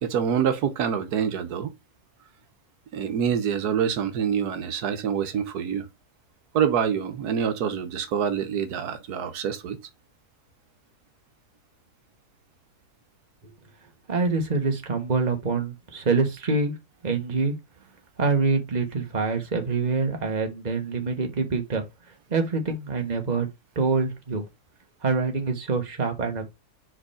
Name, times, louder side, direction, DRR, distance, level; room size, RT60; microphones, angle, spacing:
voice 1, 0.0-1.7 2.9-5.9 6.5-9.8, right 8 dB, 80° right, 1.4 m, -26 dB
voice 2, 14.1-16.7 17.0-17.5 18.2-21.8 22.3-23.5 23.7-24.4 25.0-26.4, right 4 dB, 30° right, 1.4 m, -25 dB
5.0 x 4.3 x 5.0 m
omnidirectional pair, 1.6 m